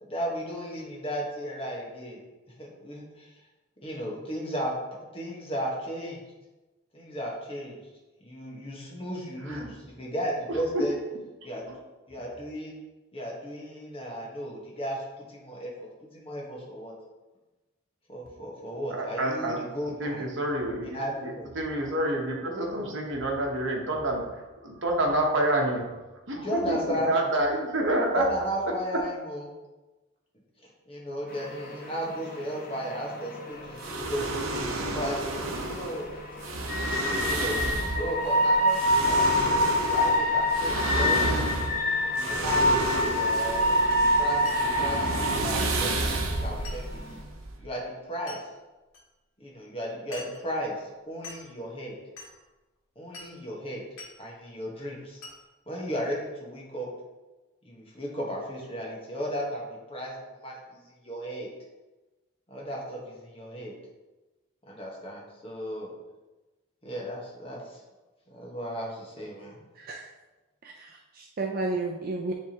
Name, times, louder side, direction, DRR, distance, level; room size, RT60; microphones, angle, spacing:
voice 1, 0.0-2.2 2.6-3.3 3.8-4.7 5.1-6.2 6.9-7.8 8.2-10.9 11.4-11.7 12.1-12.7 13.1-15.7 16.1-16.9 18.1-20.2 20.8-21.4 26.3-27.1 28.1-29.5 30.6-34.4 34.9-36.1 37.2-39.3 39.9-41.5 42.1-43.9 44.2-47.2 47.6-48.4 49.4-51.9 53.0-53.8 54.2-55.2 55.7-56.9 57.6-60.1 60.4-61.5 62.5-63.7 64.7-65.9 66.8-67.8 68.3-69.6, equal, 25° left, -3 dB, 1.2 m, -35 dB
voice 2, 18.9-19.6 20.0-21.0 21.2-26.0 26.3-28.2, right 1 dB, 60° right, 0 dB, 1.1 m, -28 dB
sound 1, 31.3-47.2, left 1 dB, 40° left, 0.9 m, -27 dB
sound 2, 33.8-47.7, right 2 dB, 75° right, 0.8 m, -31 dB
Glass, 44.4-44.7 45.6-45.8 46.6-46.9 48.3-48.4 48.9-49.0 50.1-50.5 51.2-51.5 52.2-52.4 53.1-53.4 54.0-54.2 55.2-55.4, left 2 dB, 70° left, 1.8 m, -44 dB
voice 3, 69.8-70.1 70.6-72.3, right 2 dB, 40° right, 0 dB, 0.4 m, -32 dB
10.0 x 3.4 x 2.9 m, 1.1 s
head